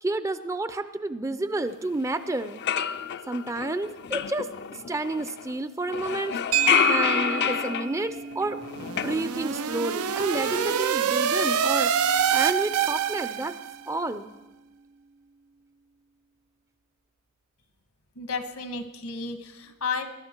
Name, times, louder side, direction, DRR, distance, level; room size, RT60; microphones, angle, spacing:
voice 1, 0.0-2.6 3.3-4.5 4.8-6.4 6.9-11.9 12.3-13.5 13.9-14.3, right 2 dB, 15° right, 12 dB, 0.5 m, -30 dB
sound 1, 2.0-2.1 2.4-5.5 5.9-9.8 10.1-10.8, left 8 dB, 50° left, 0.5 m, -29 dB
sound 2, 6.5-14.9, right 10 dB, 70° right, 1.1 m, -34 dB
sound 3, 8.7-13.7, right 8 dB, 85° right, 0.5 m, -26 dB
voice 2, 18.2-20.0, left 4 dB, 75° left, 8 dB, 1.5 m, -32 dB
20.5 x 12.0 x 4.5 m, 1.0 s
head